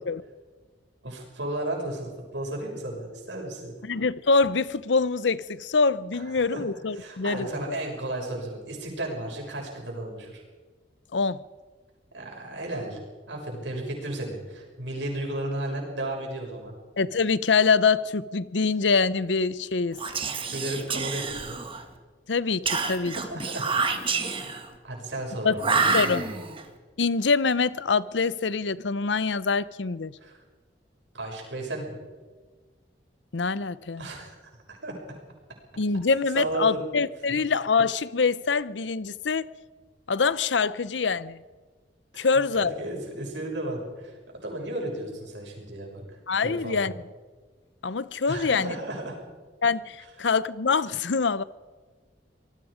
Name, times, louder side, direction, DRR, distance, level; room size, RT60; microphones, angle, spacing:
voice 1, 1.0-3.7 6.1-6.6 6.9-10.4 12.1-13.0 13.3-16.7 20.5-21.6 23.1-24.2 24.8-26.3 30.2-30.4 31.1-32.0 34.0-34.3 34.7-34.9 36.3-36.8 37.3-37.4 42.1-42.3 42.5-46.9 48.3-49.2, right 1 dB, 90° right, 6.6 m, -34 dB
voice 2, 3.8-7.8 11.1-11.4 17.0-20.0 22.3-23.1 25.4-25.6 25.9-26.2 27.0-30.1 33.3-34.1 35.8-39.5 40.1-41.4 42.2-42.7 46.3-46.9 47.8-48.8 49.6-51.4, left 4 dB, 90° left, 0.7 m, -25 dB
Whispering, 19.9-21.9 22.7-24.7 25.6-26.6, right 4 dB, 30° right, 1.8 m, -28 dB
26.5 x 19.5 x 5.1 m
head